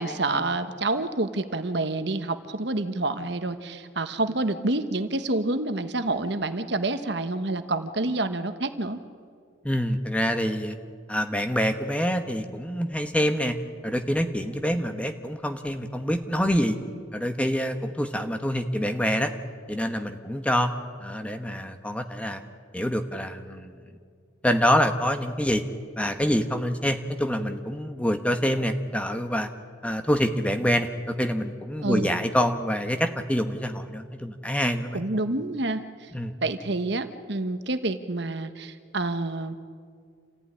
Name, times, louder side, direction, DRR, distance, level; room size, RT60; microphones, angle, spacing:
voice 1, 0.0-9.0 31.8-32.2 34.9-36.1 36.4-39.6, right 2 dB, 55° right, 10 dB, 1.2 m, -28 dB
voice 2, 9.6-10.8 11.1-13.6 13.8-16.8 17.1-19.3 19.7-20.7 21.0-22.4 22.7-23.8 24.4-25.6 26.0-29.5 29.8-35.0 36.1-36.3, equal, 5° left, 7 dB, 1.1 m, -26 dB
28.0 x 15.0 x 9.9 m, 2.1 s
head